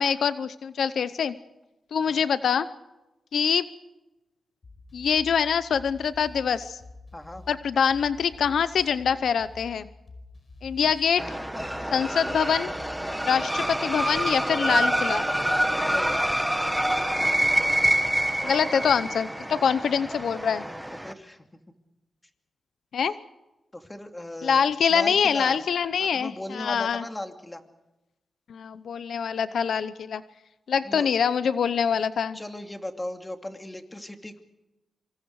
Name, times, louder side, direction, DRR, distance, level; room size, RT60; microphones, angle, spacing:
voice 1, 0.0-1.3 1.9-2.7 3.3-3.7 4.9-6.8 7.5-9.9 10.6-11.2 11.9-12.7 13.3-15.2 18.4-20.6 22.9-23.2 24.4-27.0 28.5-30.2 30.7-32.4, left 7 dB, 80° left, 14 dB, 0.8 m, -24 dB
sound 1, 4.6-13.3, left 2 dB, 50° left, 5.1 m, -47 dB
voice 2, 7.1-7.4 13.1-13.4 15.7-16.2 21.0-21.6 23.7-24.6 24.9-25.6 26.0-27.6 30.8-31.1 32.3-34.4, left 1 dB, 15° left, 6 dB, 2.7 m, -37 dB
sound 2, 11.2-21.1, right 1 dB, 5° right, 1.7 m, -26 dB
26.5 x 25.5 x 4.8 m, 1.0 s
cardioid pair, 80°, 0 cm